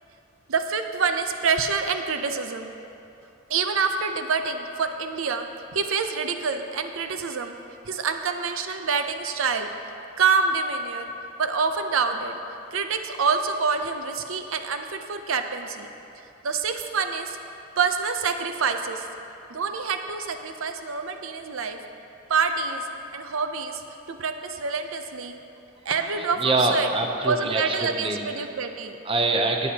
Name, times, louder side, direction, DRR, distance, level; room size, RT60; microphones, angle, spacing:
voice 1, 0.5-2.7 3.5-5.4 5.7-7.5 7.9-9.7 10.2-11.1 11.4-12.4 12.7-15.9 16.4-17.4 17.8-19.1 19.5-21.8 22.3-22.9 23.1-23.8 24.1-25.4 25.9-26.9 27.2-29.0, right 5 dB, 80° right, 7 dB, 0.6 m, -26 dB
voice 2, 26.4-28.2 29.1-29.7, right 2 dB, 25° right, 3 dB, 0.6 m, -24 dB
17.0 x 8.4 x 2.8 m, 2.7 s
head